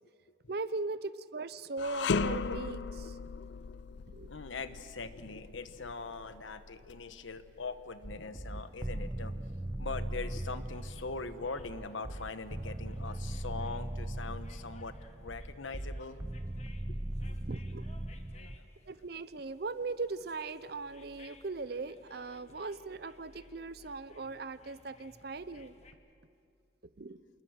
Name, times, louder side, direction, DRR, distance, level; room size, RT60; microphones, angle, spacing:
voice 1, 0.5-3.2 4.1-4.3 17.5-17.9 18.9-25.7 27.0-27.2, right 3 dB, 55° right, 15 dB, 0.7 m, -39 dB
sound 1, 1.8-11.0 11.4-11.6 12.5-13.4, left 4 dB, 65° left, 0.4 m, -39 dB
voice 2, 4.3-9.4 9.8-16.2 16.9-17.0 17.3-17.4 18.3-18.7, left 4 dB, 90° left, 11 dB, 1.1 m, -42 dB
sound 2, 8.0-18.6, right 1 dB, 15° right, 0.5 m, -39 dB
sound 3, 10.7-25.9, left 3 dB, 35° left, 1.3 m, -61 dB
27.5 x 20.5 x 6.4 m, 2.4 s
head